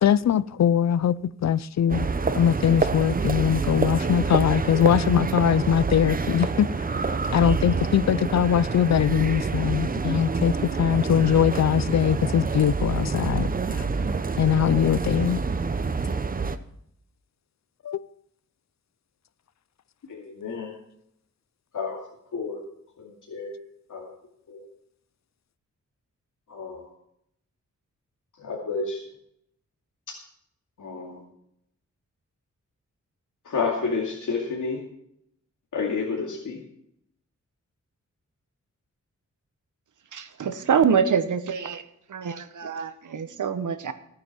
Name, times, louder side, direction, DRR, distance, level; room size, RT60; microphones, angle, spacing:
voice 1, 0.0-1.2 1.4-2.1 2.3-6.7 7.3-13.5 14.4-15.4 17.8-18.1, left 9 dB, 65° left, 0.5 m, -21 dB
sound 1, 1.9-16.6, right 4 dB, 30° right, 0.7 m, -27 dB
voice 2, 20.1-20.8 21.7-22.0 22.3-22.6 23.0-23.6 23.9-24.1 24.5-24.6 26.5-26.9 28.4-29.0 30.8-31.2 33.4-34.8 35.7-36.6, left 4 dB, 85° left, 2.5 m, -30 dB
voice 3, 40.1-41.8 42.1-43.9, right 7 dB, 85° right, 1.2 m, -25 dB
15.5 x 8.8 x 5.9 m
wide cardioid pair, 145°, 30 cm